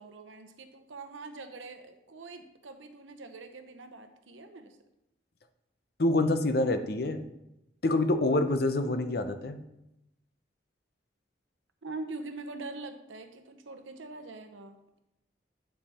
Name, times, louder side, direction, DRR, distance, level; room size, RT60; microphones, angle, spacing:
voice 1, 0.0-4.8 11.8-15.0, right 3 dB, 90° right, 7 dB, 0.9 m, -43 dB
voice 2, 6.0-7.2 7.8-9.6, left 2 dB, 55° left, 9 dB, 0.6 m, -26 dB
8.9 x 5.7 x 4.2 m, 0.88 s
head